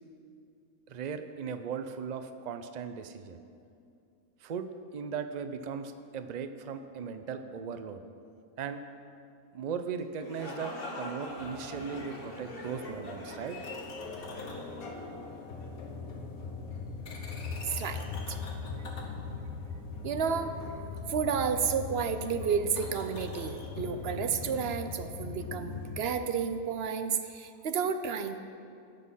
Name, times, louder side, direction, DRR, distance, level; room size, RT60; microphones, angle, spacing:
voice 1, 0.9-3.4 4.4-4.7 4.9-8.0 8.6-8.8 9.5-13.6, right 6 dB, 85° right, 9 dB, 0.3 m, -37 dB
sound 1, 10.0-15.7, left 1 dB, 45° left, 1.4 m, -44 dB
sound 2, 11.3-26.0, left 4 dB, 80° left, 1.6 m, -40 dB
voice 2, 17.7-18.4 20.0-20.7 21.1-28.4, right 6 dB, 55° right, 9 dB, 0.7 m, -31 dB
17.5 x 6.4 x 5.6 m, 2.5 s
omnidirectional pair, 1.5 m